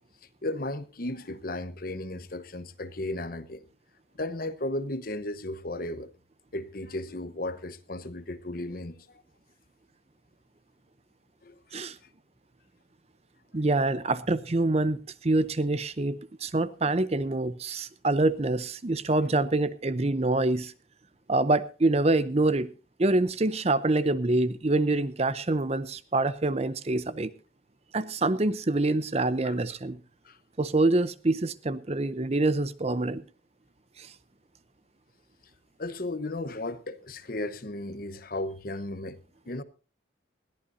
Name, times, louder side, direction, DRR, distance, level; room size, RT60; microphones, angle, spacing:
voice 1, 0.4-3.6 4.2-6.1 6.5-9.2 11.4-11.8 29.4-29.6 30.2-30.4 35.8-39.2 39.5-39.6, left 1 dB, 45° left, 1.0 m, -35 dB
voice 2, 13.5-20.7 21.3-22.7 23.0-27.3 27.9-30.0 30.6-33.2 34.0-34.1, right 2 dB, 35° right, 0.6 m, -26 dB
21.0 x 14.5 x 2.7 m
head